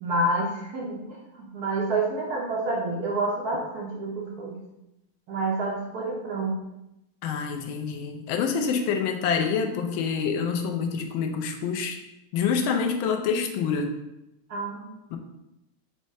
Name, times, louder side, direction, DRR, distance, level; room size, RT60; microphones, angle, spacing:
voice 1, 0.0-4.5 5.3-6.6 14.5-15.0, right 2 dB, 65° right, -2 dB, 1.0 m, -28 dB
voice 2, 7.2-12.0 12.3-13.9 15.1-15.2, left 6 dB, 80° left, 4 dB, 1.4 m, -26 dB
5.3 x 2.1 x 4.7 m, 0.90 s
omnidirectional pair, 2.3 m